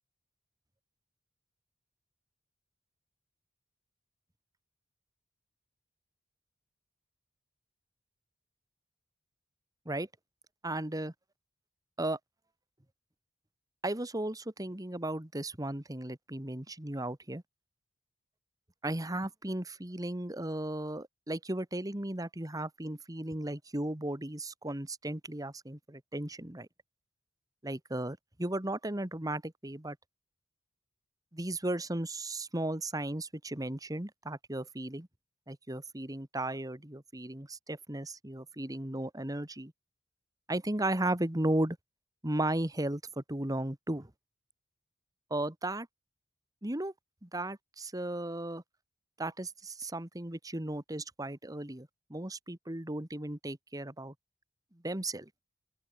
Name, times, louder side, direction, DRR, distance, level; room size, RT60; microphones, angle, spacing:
voice 1, 10.6-11.1 12.0-12.2 13.8-17.4 18.8-26.7 27.6-30.0 31.3-35.1 35.5-39.7 40.5-41.8 42.2-44.1 45.3-45.9 46.6-46.9 47.2-48.6 49.2-54.1 54.8-55.3, right 1 dB, 20° right, 1.6 m, -35 dB
open air
head